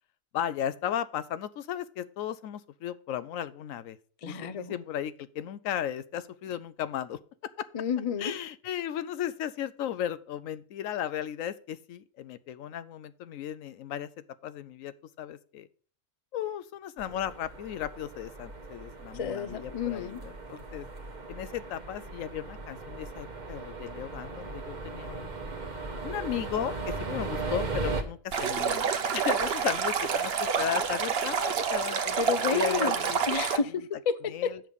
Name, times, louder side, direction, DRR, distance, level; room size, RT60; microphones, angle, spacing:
voice 1, 0.3-4.0 4.2-7.7 8.2-15.7 16.3-20.9 21.3-25.3 26.0-32.2 32.5-33.2 33.5-33.6 34.3-34.6, left 10 dB, 80° left, 15 dB, 1.0 m, -35 dB
voice 2, 4.2-4.7 7.7-8.3 19.1-20.2 32.2-33.0 33.3-34.1, left 6 dB, 45° left, 13 dB, 0.5 m, -31 dB
sound 1, 17.0-28.0, right 3 dB, 35° right, 1.1 m, -38 dB
Stream, 28.3-33.6, right 6 dB, 55° right, 1.0 m, -28 dB
7.6 x 6.6 x 5.3 m, 0.43 s
omnidirectional pair, 1.4 m